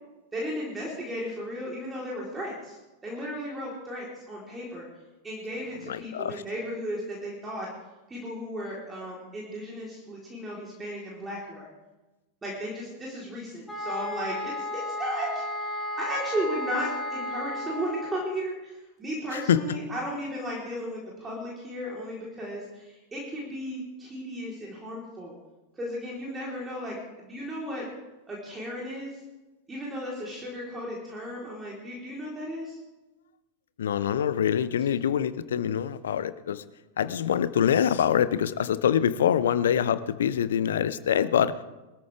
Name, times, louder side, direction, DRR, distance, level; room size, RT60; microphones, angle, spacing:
voice 1, 0.3-4.9 5.2-7.7 8.1-11.7 12.4-25.3 25.8-27.9 28.3-29.1 29.7-32.8, equal, 15° right, -4 dB, 3.9 m, -35 dB
voice 2, 5.9-6.4 19.3-19.8 33.8-36.6 37.0-41.5, left 9 dB, 65° left, 15 dB, 0.7 m, -25 dB
sound 1, 13.7-18.4, left 1 dB, 5° left, 4.4 m, -33 dB
22.5 x 13.5 x 3.5 m, 1.1 s
figure-of-eight pair, 90°, 0 cm